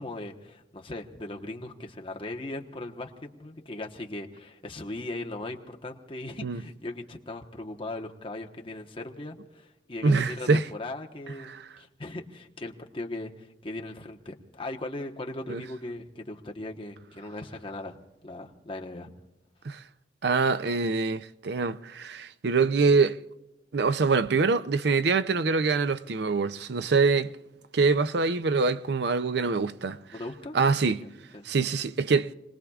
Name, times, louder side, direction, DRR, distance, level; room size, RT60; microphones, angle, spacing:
voice 1, 0.0-18.0 18.2-19.1 30.1-30.6 30.9-31.5, left 2 dB, 30° left, 1.2 m, -38 dB
voice 2, 10.0-10.7 11.4-11.6 15.5-15.6 19.6-19.8 20.2-23.2 23.7-27.3 27.7-30.0 30.5-31.0 31.4-32.3, right 4 dB, 65° right, 0.5 m, -24 dB
29.0 x 20.0 x 2.4 m
head